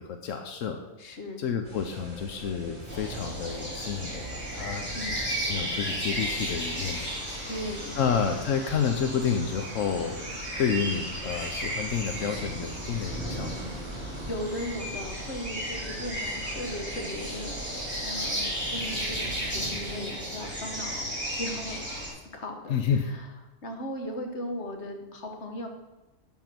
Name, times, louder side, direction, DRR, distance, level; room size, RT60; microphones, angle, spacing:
voice 1, 0.0-0.8 1.4-4.9 5.5-7.1 8.0-10.2 10.6-13.7 22.7-23.1, left 7 dB, 90° left, 5 dB, 1.2 m, -29 dB
voice 2, 1.0-1.5 4.9-5.2 7.5-8.2 13.9-17.6 18.0-21.0 21.3-21.8 22.3-22.7 23.0-23.3 23.6-25.7, left 1 dB, 65° left, 3 dB, 1.6 m, -37 dB
sound 1, 1.6-20.0, right 1 dB, 30° right, 3.6 m, -42 dB
sound 2, 2.9-22.1, equal, 10° left, 3.2 m, -34 dB
12.0 x 5.7 x 6.0 m, 1.1 s
omnidirectional pair, 1.3 m